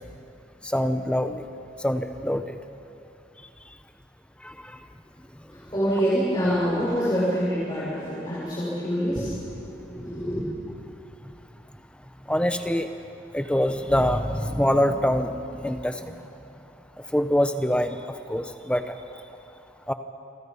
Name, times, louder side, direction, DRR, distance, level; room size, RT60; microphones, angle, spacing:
voice 1, 0.6-1.5 1.8-2.6 4.4-4.8 11.2-11.3 12.3-12.9 13.3-16.2 17.0-19.2 19.9-20.0, equal, 5° left, 8 dB, 0.8 m, -25 dB
voice 2, 5.5-10.6, equal, 25° left, -9 dB, 6.4 m, -26 dB
29.0 x 23.5 x 5.5 m, 2.7 s
head